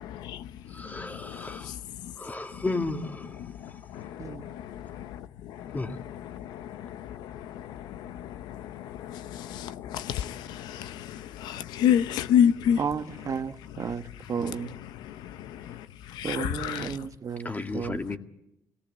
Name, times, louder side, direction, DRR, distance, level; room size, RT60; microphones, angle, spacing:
voice 1, 0.7-1.7 2.2-3.4 5.7-6.0 16.7-16.9 17.4-18.2, left 3 dB, 25° left, 2.1 m, -33 dB
voice 2, 9.9-10.3 11.4-12.8 16.2-16.9, left 9 dB, 90° left, 0.7 m, -23 dB
voice 3, 12.8-14.0 14.3-14.7 16.2-18.0, right 6 dB, 50° right, 1.2 m, -33 dB
22.5 x 17.5 x 7.5 m
supercardioid pair, 65°, 7 cm